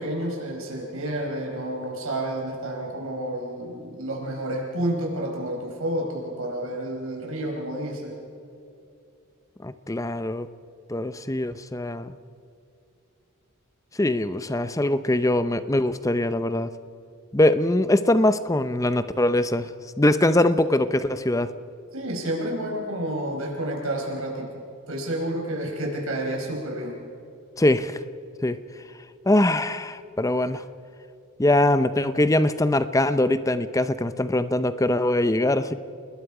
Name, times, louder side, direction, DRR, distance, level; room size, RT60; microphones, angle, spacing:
voice 1, 0.0-8.1 21.9-24.4 24.9-27.0, right 1 dB, 75° right, -1 dB, 4.9 m, -30 dB
voice 2, 9.6-10.5 10.9-12.2 14.0-16.7 17.3-19.7 20.0-21.5 27.6-28.0 28.4-28.6 29.3-30.6 31.4-35.7, left 1 dB, 15° left, 12 dB, 0.6 m, -22 dB
30.0 x 20.5 x 4.9 m, 2.6 s
head